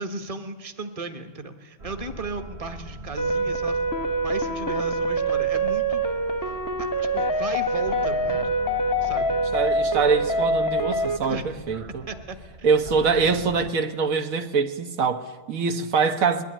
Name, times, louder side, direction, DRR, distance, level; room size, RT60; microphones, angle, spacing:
voice 1, 0.0-3.8 4.2-6.0 6.4-8.4 9.0-9.4 11.2-11.4 12.1-12.7, right 3 dB, 25° right, 1.3 m, -36 dB
sound 1, 1.8-13.7, right 2 dB, 55° right, 1.3 m, -42 dB
sound 2, 3.2-11.2, right 1 dB, 20° left, 0.7 m, -25 dB
voice 2, 9.5-12.1 12.6-16.4, right 5 dB, 80° right, 1.5 m, -24 dB
21.5 x 12.5 x 10.0 m
omnidirectional pair, 1.4 m